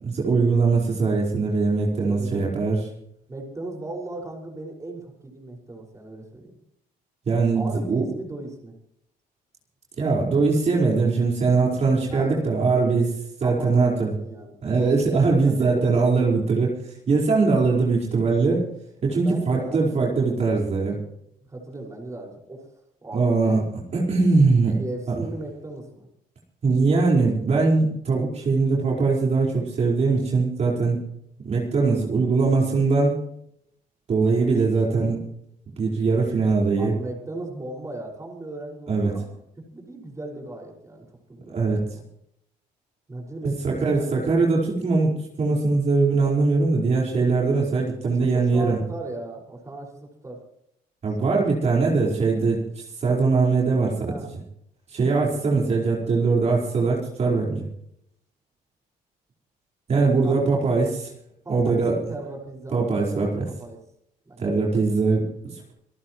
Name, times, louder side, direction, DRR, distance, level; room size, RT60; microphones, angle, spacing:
voice 1, 0.0-2.8 7.3-8.1 10.0-14.1 14.6-18.6 19.0-21.0 23.1-24.8 25.1-25.2 26.6-31.0 31.4-33.1 34.1-35.2 35.8-36.9 38.9-39.1 41.5-41.8 43.4-48.8 51.0-54.1 54.9-57.6 59.9-61.0 61.5-62.0 62.7-63.4 64.4-65.7, right 4 dB, 40° right, -3 dB, 4.8 m, -21 dB
voice 2, 2.1-2.5 3.3-6.5 7.5-8.7 12.1-12.5 13.4-14.6 15.4-16.1 19.2-20.0 21.5-22.6 23.0-23.6 24.8-26.1 34.3-34.5 36.8-39.3 39.7-42.0 43.1-44.1 48.0-50.4 51.1-51.4 54.1-54.3 60.2-60.6 61.4-63.8 64.2-64.9, right 2 dB, 20° right, -1 dB, 5.6 m, -37 dB
26.5 x 14.5 x 3.2 m, 0.74 s
cardioid pair, 110°, 17 cm